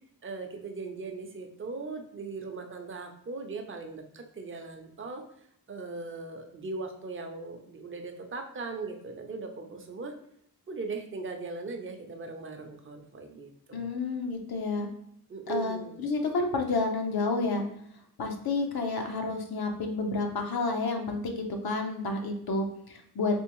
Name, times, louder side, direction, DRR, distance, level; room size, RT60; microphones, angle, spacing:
voice 1, 0.2-5.2 5.7-10.1 10.7-14.0 15.3-16.1, right 3 dB, 35° right, 4 dB, 0.6 m, -39 dB
voice 2, 13.7-14.9 15.5-17.6 18.2-23.4, left 3 dB, 70° left, 3 dB, 0.7 m, -30 dB
3.5 x 2.9 x 3.0 m, 0.72 s
wide cardioid pair, 75°, 38 cm